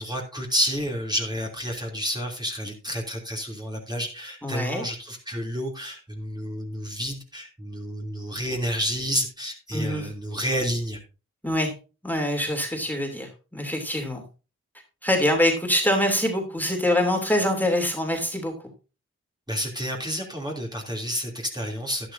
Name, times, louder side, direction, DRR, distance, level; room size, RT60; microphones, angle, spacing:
voice 1, 0.0-11.0 19.5-22.1, equal, 15° right, -1 dB, 3.0 m, -30 dB
voice 2, 4.4-4.8 9.7-10.1 11.4-11.7 12.0-14.2 15.0-18.5, left 1 dB, 5° left, 2 dB, 3.0 m, -24 dB
11.5 x 11.5 x 2.7 m, 0.32 s
wide cardioid pair, 65°, 30 cm